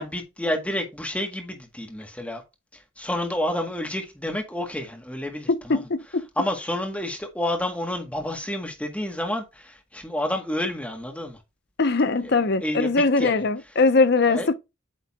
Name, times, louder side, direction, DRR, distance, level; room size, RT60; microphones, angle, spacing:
voice 1, 0.0-2.4 2.7-5.9 6.4-11.4 12.2-13.4 14.3-14.6, left 1 dB, 5° left, 1.7 m, -30 dB
voice 2, 5.5-6.2 11.8-14.6, left 3 dB, 55° left, 0.7 m, -21 dB
8.7 x 3.9 x 3.6 m
head